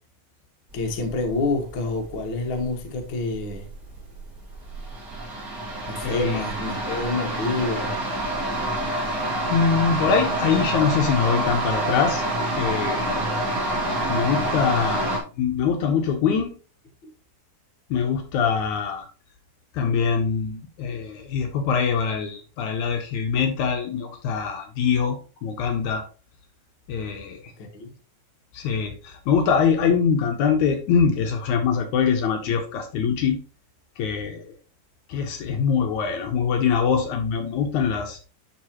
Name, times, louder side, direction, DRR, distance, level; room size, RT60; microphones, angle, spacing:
voice 1, 0.7-3.7 5.9-7.9 27.8-27.9, left 3 dB, 55° left, 1.4 m, -27 dB
sound 1, 0.7-15.2, right 1 dB, 35° right, 1.8 m, -28 dB
voice 2, 6.0-6.4 9.5-12.2 12.6-13.1 14.1-16.5 17.9-19.1 19.7-26.0 26.9-27.4 28.5-33.4 34.0-34.5 35.1-38.2, left 6 dB, 75° left, 2.1 m, -23 dB
11.0 x 3.8 x 2.9 m
omnidirectional pair, 3.8 m